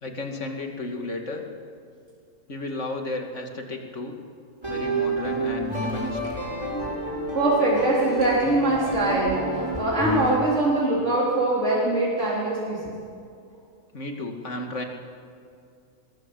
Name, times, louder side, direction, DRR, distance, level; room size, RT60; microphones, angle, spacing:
voice 1, 0.0-1.4 2.5-4.2 4.7-6.2 13.9-14.8, left 2 dB, 60° left, 3 dB, 2.7 m, -33 dB
sound 1, 4.6-10.4, right 2 dB, 20° right, 6.8 m, -29 dB
voice 2, 7.3-12.9, right 2 dB, 55° right, -6 dB, 4.3 m, -23 dB
23.0 x 20.5 x 8.0 m, 2.4 s
omnidirectional pair, 1.4 m